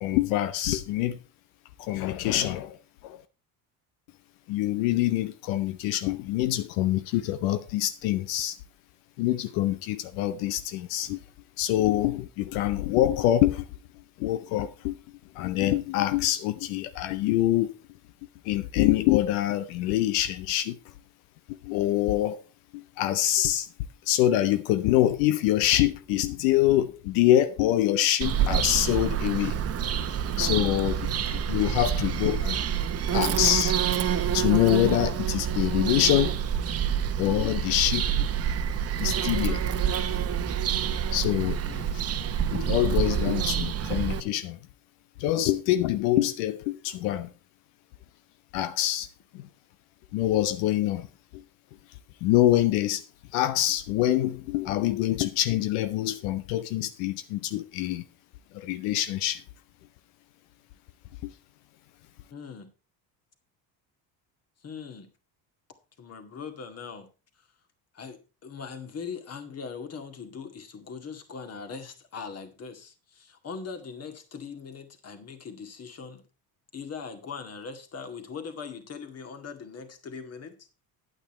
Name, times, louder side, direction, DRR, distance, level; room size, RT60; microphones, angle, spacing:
voice 1, 0.0-1.2 1.8-2.8 3.0-3.2 4.5-8.6 9.2-11.2 11.6-13.7 14.2-15.0 15.4-17.7 18.4-20.8 21.5-22.4 22.7-23.7 24.1-29.5 30.4-32.7 33.1-33.7 34.3-36.4 37.2-38.3 39.0-39.6 41.1-41.6 41.9-42.0 42.5-44.6 45.2-47.3 48.5-49.1 49.3-49.5 50.1-51.1 51.3-51.4 52.2-53.0 53.3-58.0 58.5-59.4 61.2-61.3, left 13 dB, 90° left, 0.7 m, -25 dB
Bird vocalization bird call bird song, 28.2-44.2, right 8 dB, 40° right, 0.9 m, -27 dB
voice 2, 62.3-62.7 64.6-65.1 66.0-67.1 67.4-67.5 67.9-76.2 76.7-80.6, left 5 dB, 40° left, 2.1 m, -40 dB
9.3 x 8.9 x 4.3 m
cardioid pair, 100°, 39 cm